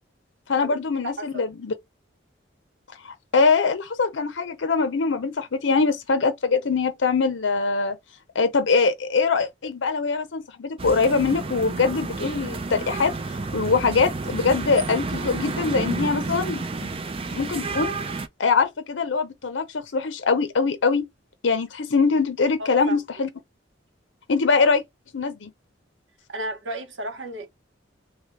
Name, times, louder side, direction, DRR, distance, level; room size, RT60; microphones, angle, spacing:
voice 1, 0.5-1.7 3.0-8.0 8.3-13.1 13.5-17.0 17.3-17.9 18.4-21.0 21.4-23.3 24.3-24.8 25.1-25.5, left 4 dB, 75° left, 0.6 m, -23 dB
voice 2, 1.0-1.5 22.7-23.0 26.3-27.5, right 1 dB, 75° right, 1.2 m, -33 dB
sound 1, 10.8-18.3, right 3 dB, 30° right, 0.4 m, -30 dB
3.3 x 3.0 x 3.1 m
head